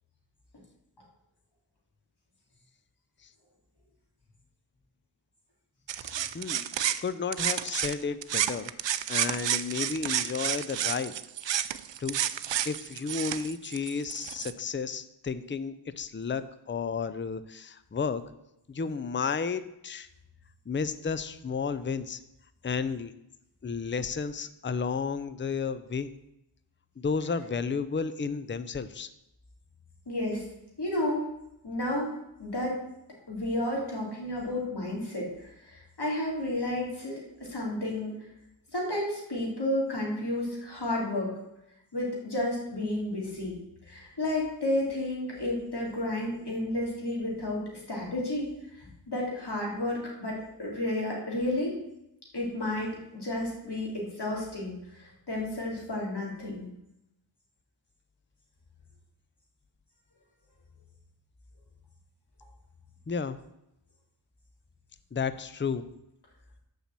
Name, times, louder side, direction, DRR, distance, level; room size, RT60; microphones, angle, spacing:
sound 1, 5.9-14.5, right 10 dB, 70° right, 0.5 m, -31 dB
voice 1, 6.0-6.7 7.0-11.1 12.0-12.2 12.6-18.2 18.7-20.1 20.7-22.2 22.6-23.1 23.6-26.1 27.0-29.1 63.1-63.4 65.1-65.8, left 5 dB, 25° left, 14 dB, 0.5 m, -32 dB
voice 2, 30.1-30.4 30.8-31.3 31.6-32.1 32.4-32.7 33.3-38.2 38.7-41.3 41.9-43.5 43.9-48.5 48.8-51.7 52.3-56.7, left 1 dB, 60° left, -3 dB, 3.3 m, -32 dB
7.1 x 5.7 x 7.5 m, 0.85 s
wide cardioid pair, 70°, 45 cm